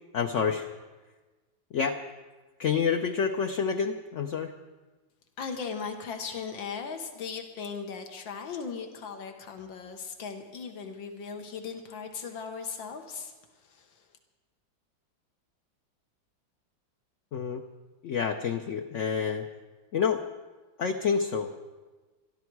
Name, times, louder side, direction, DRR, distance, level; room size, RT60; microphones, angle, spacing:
voice 1, 0.1-0.7 1.7-2.0 2.6-4.5 17.3-17.6 18.0-19.5 19.9-20.2 20.8-21.5, left 6 dB, 65° left, 4 dB, 0.7 m, -28 dB
voice 2, 5.4-13.3 13.7-13.9, left 5 dB, 90° left, 5 dB, 2.0 m, -38 dB
22.5 x 13.5 x 4.7 m, 1.3 s
omnidirectional pair, 2.0 m